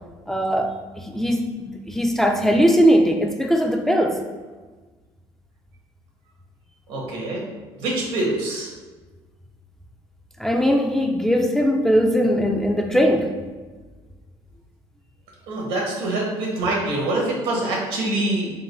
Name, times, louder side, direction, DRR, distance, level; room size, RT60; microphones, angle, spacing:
voice 1, 0.3-4.2 10.4-13.3, equal, 5° left, 3 dB, 0.3 m, -20 dB
voice 2, 6.9-7.5 7.8-8.7 15.5-18.5, right 2 dB, 90° right, -2 dB, 1.3 m, -25 dB
3.7 x 2.5 x 4.5 m, 1.3 s
cardioid pair, 135°, 9 cm